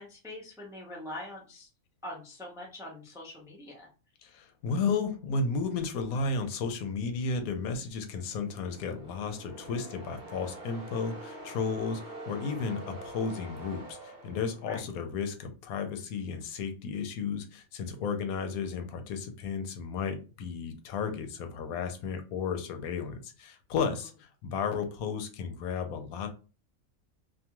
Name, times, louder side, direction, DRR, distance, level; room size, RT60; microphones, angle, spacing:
voice 1, 0.0-1.7 2.0-3.9 14.7-14.9, left 1 dB, 5° right, -2 dB, 0.3 m, -43 dB
voice 2, 4.2-26.3, left 5 dB, 85° left, 7 dB, 1.1 m, -33 dB
sound 1, 8.0-15.1, right 1 dB, 50° right, 0.6 m, -46 dB
2.6 x 2.3 x 2.9 m, 0.33 s
omnidirectional pair, 1.5 m